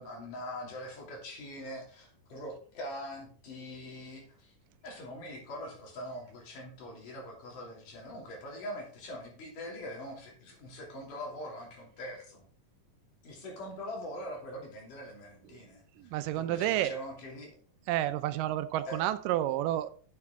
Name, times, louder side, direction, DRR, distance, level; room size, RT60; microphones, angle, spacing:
voice 1, 0.0-4.5 4.8-12.4 13.2-17.6 18.9-19.0, equal, 75° left, 4.4 m, -43 dB
voice 2, 16.0-17.0 17.9-19.9, right 13 dB, 90° right, 2.3 m, -30 dB
11.0 x 7.1 x 3.7 m
omnidirectional pair, 3.8 m